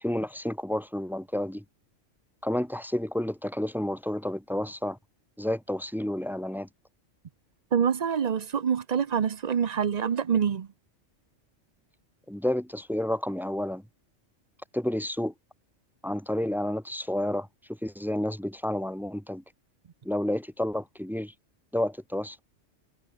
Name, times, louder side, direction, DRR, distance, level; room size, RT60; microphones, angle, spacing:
voice 1, 0.0-1.6 2.4-5.0 5.4-6.7 12.3-13.8 14.7-15.3 16.0-17.5 17.8-19.4 20.0-21.3 21.7-22.4, left 1 dB, ahead, 1.2 m, -30 dB
voice 2, 7.7-10.7, right 7 dB, 45° right, 0.6 m, -26 dB
omnidirectional pair, 1.2 m